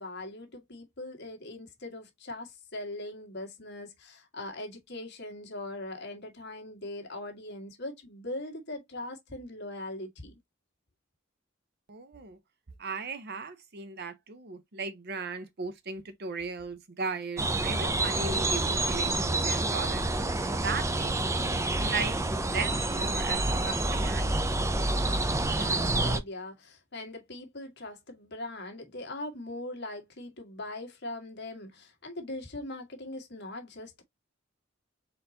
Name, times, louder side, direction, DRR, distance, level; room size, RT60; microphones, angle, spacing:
voice 1, 0.0-10.3 25.4-34.0, left 2 dB, 55° left, 1.6 m, -41 dB
voice 2, 11.9-12.4 12.8-20.0 20.6-22.2 22.5-24.2, right 4 dB, 55° right, 0.8 m, -37 dB
sound 1, 17.4-26.2, right 2 dB, 15° right, 0.5 m, -28 dB
4.3 x 4.1 x 2.7 m
head